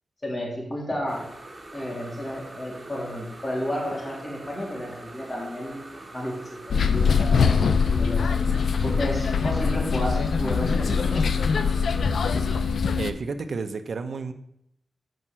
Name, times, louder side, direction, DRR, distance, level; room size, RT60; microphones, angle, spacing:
voice 1, 0.2-1.3 1.7-5.8 6.1-6.4 6.7-8.3 8.8-11.2, equal, 30° left, -2 dB, 3.3 m, -32 dB
sound 1, 1.1-12.6, right 2 dB, 30° right, 2.2 m, -43 dB
sound 2, 6.7-13.1, left 5 dB, 80° left, 0.5 m, -23 dB
voice 2, 13.0-14.3, right 4 dB, 65° right, 6 dB, 0.7 m, -31 dB
7.9 x 5.5 x 7.4 m, 0.75 s
wide cardioid pair, 90°, 0 cm